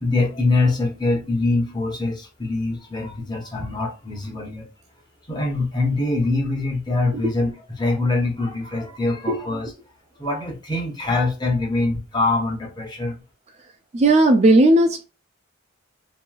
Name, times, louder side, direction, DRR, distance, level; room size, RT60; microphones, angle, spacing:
voice 1, 0.0-4.7 5.3-9.7 10.2-13.2, left 2 dB, 20° left, 0.9 m, -24 dB
voice 2, 13.9-15.0, right 1 dB, 35° right, 0.4 m, -15 dB
3.0 x 2.7 x 2.3 m
head